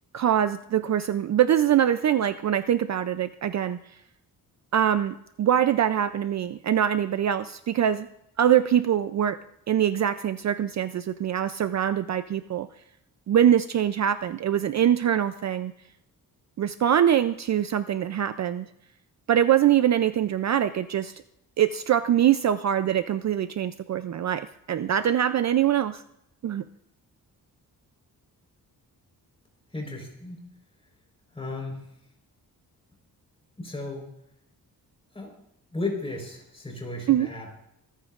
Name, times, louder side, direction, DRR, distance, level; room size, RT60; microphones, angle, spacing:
voice 1, 0.1-3.8 4.7-8.1 8.4-9.4 9.7-12.7 13.3-15.7 16.6-18.7 19.3-21.2 21.6-26.0 26.4-26.6 37.1-37.3, right 10 dB, 50° right, 11 dB, 0.4 m, -23 dB
voice 2, 29.7-30.4 31.3-31.9 33.6-34.1 35.1-35.3 35.7-37.5, left 2 dB, 15° left, 0 dB, 4.1 m, -34 dB
24.5 x 14.5 x 2.5 m, 0.80 s
wide cardioid pair, 175°, 37 cm